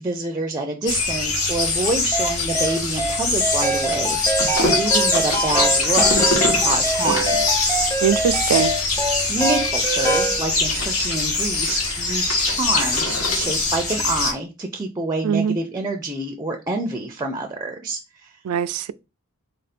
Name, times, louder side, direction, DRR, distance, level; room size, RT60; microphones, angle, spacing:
voice 1, 0.0-6.3 6.5-7.4 9.3-18.4, right 2 dB, 15° right, 0.4 m, -27 dB
sound 1, 0.9-14.3, left 3 dB, 65° left, 1.2 m, -23 dB
sound 2, 2.1-10.4, right 2 dB, 10° left, 0.8 m, -24 dB
sound 3, 4.4-9.0 9.7-10.0 10.4-13.5, left 2 dB, 85° left, 1.5 m, -24 dB
voice 2, 8.0-8.7 15.2-15.6 18.4-18.9, right 8 dB, 85° right, 0.3 m, -21 dB
3.8 x 2.6 x 4.1 m
head